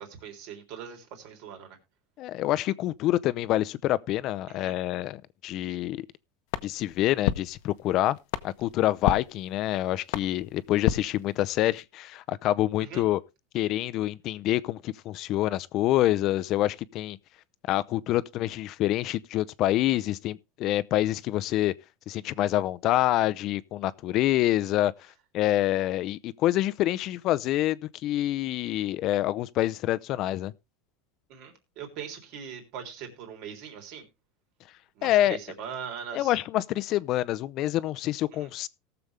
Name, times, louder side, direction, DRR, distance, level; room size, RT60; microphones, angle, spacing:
voice 1, 0.0-1.8 4.5-4.8 10.9-11.1 12.8-13.1 31.3-34.1 35.0-36.4 38.3-38.5, right 7 dB, 60° right, 3.5 m, -41 dB
voice 2, 2.2-6.0 6.6-8.2 8.4-13.2 13.5-17.2 17.7-21.7 22.1-24.9 25.3-30.5 35.0-35.4 36.1-38.7, left 14 dB, 45° left, 0.6 m, -26 dB
sound 1, 6.5-11.8, left 12 dB, 65° left, 0.9 m, -33 dB
18.5 x 7.0 x 3.3 m
supercardioid pair, 135°, 0 cm